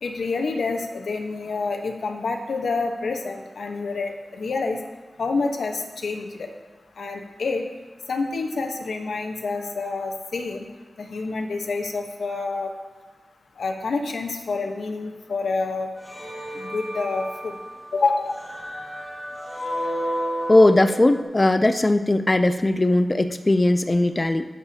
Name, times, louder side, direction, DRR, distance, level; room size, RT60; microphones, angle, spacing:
voice 1, 0.0-4.8 5.2-6.5 7.0-7.6 8.1-10.6 11.0-12.7 13.6-15.9 16.5-17.6 17.9-18.3, left 3 dB, 80° left, 3 dB, 1.0 m, -27 dB
sound 1, 16.0-21.2, equal, 10° left, 1.9 m, -32 dB
voice 2, 20.5-24.5, left 2 dB, 25° left, 10 dB, 0.4 m, -19 dB
19.5 x 6.9 x 2.8 m, 1.3 s
wide cardioid pair, 90°, 0 cm